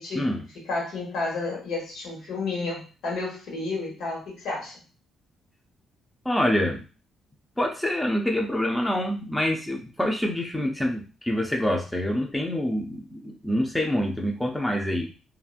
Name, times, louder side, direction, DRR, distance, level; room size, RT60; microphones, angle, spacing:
voice 1, 0.5-4.8, left 3 dB, 80° left, -3 dB, 1.4 m, -31 dB
voice 2, 6.2-6.8 7.6-15.1, left 1 dB, 10° left, 1 dB, 0.5 m, -26 dB
2.9 x 2.5 x 2.4 m, 0.35 s
cardioid pair, 90°, 0 cm